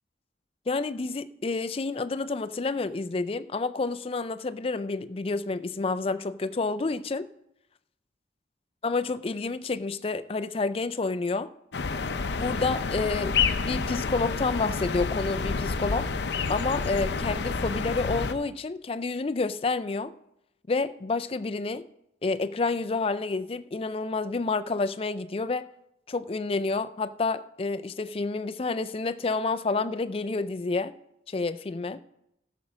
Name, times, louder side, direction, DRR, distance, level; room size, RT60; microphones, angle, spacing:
voice 1, 0.7-7.3 8.8-11.5 12.4-16.1 16.5-20.1 20.7-21.9 22.2-25.7 26.1-30.9 31.3-32.0, left 3 dB, 30° left, 0.4 m, -29 dB
sound 1, 11.7-18.3, left 4 dB, 70° left, 0.6 m, -29 dB
14.0 x 6.1 x 6.2 m
head